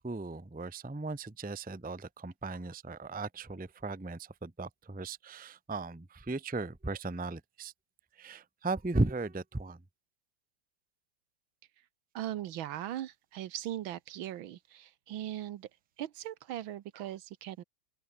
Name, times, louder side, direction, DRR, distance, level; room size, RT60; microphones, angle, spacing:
voice 1, 0.0-7.7 8.2-9.8, right 2 dB, 10° right, 0.6 m, -36 dB
voice 2, 12.1-15.7 16.0-17.6, right 12 dB, 80° right, 1.7 m, -39 dB
open air
omnidirectional pair, 2.2 m